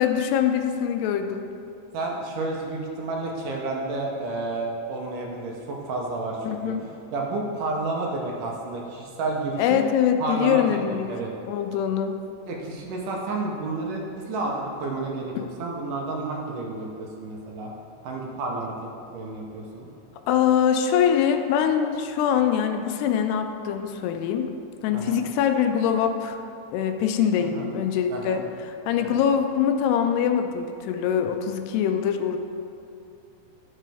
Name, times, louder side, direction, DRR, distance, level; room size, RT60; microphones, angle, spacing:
voice 1, 0.0-1.5 6.4-6.9 9.6-11.1 11.4-12.2 15.4-15.5 20.3-24.5 24.8-26.4 26.7-32.4, left 8 dB, 85° left, 6 dB, 2.6 m, -23 dB
voice 2, 1.9-9.8 10.2-11.3 12.5-15.3 15.6-17.7 18.0-18.7 19.1-19.9 24.9-25.2 27.4-27.7 28.1-28.4 29.0-29.3, right 2 dB, 70° right, -1 dB, 2.1 m, -31 dB
11.5 x 7.5 x 3.5 m, 2.7 s
omnidirectional pair, 4.6 m